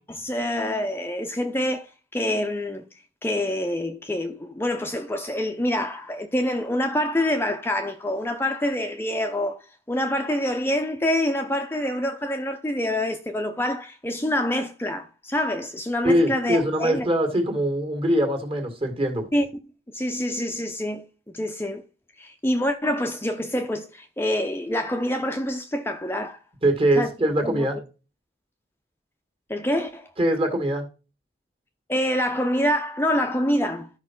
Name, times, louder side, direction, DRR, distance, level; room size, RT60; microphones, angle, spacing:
voice 1, 0.2-1.9 2.1-2.8 3.2-9.6 9.9-17.1 19.3-19.5 19.9-21.0 21.3-21.8 22.2-26.4 27.0-27.1 27.4-27.7 29.5-30.1 31.9-33.9, left 1 dB, 15° left, 0.6 m, -26 dB
voice 2, 16.0-19.3 26.6-27.8 30.2-30.8, right 1 dB, 30° right, 2.1 m, -22 dB
12.0 x 4.7 x 5.8 m
head